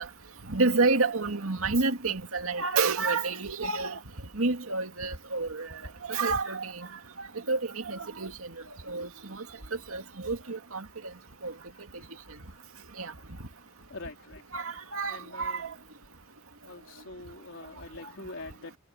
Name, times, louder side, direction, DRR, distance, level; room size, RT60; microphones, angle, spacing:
voice 1, 0.5-4.0 4.4-5.7 6.1-6.9 7.5-8.3 8.9-9.4 9.9-10.8 11.4-11.5 13.0-13.1 14.5-15.7, right 3 dB, 80° right, 2.2 m, -29 dB
voice 2, 9.2-9.6 11.2-11.3 11.7-13.4 13.7-14.5 15.0-15.7 16.6-18.8, left 2 dB, 60° left, 4.2 m, -46 dB
head